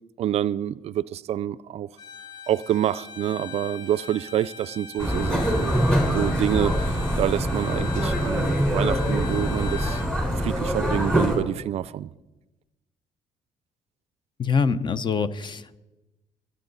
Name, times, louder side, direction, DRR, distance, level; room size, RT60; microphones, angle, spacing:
voice 1, 0.2-1.9 2.5-5.7 6.1-10.0 10.4-12.1, right 11 dB, 55° right, 19 dB, 0.4 m, -27 dB
Bowed string instrument, 2.0-10.1, left 7 dB, 70° left, 2.3 m, -40 dB
sound 1, 5.0-11.4, equal, 5° left, 3.9 m, -24 dB
voice 2, 14.4-15.8, left 5 dB, 40° left, 15 dB, 0.7 m, -25 dB
24.0 x 8.8 x 4.0 m, 1.1 s
cardioid pair, 85°, 13 cm